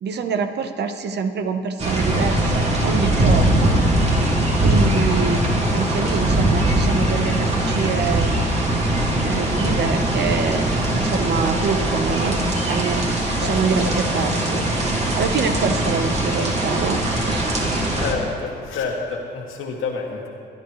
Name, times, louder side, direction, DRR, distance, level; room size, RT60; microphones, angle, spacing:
voice 1, 0.0-3.8 4.6-8.4 9.2-12.4 12.7-14.6 15.1-17.5, right 5 dB, 60° right, 7 dB, 1.1 m, -26 dB
sound 1, 1.8-18.1, right 1 dB, 35° right, 2.4 m, -21 dB
voice 2, 13.4-14.0 14.3-14.4 18.0-20.3, left 4 dB, 85° left, -1 dB, 2.1 m, -29 dB
23.5 x 10.5 x 3.2 m, 2.4 s
cardioid pair, 90°, 20 cm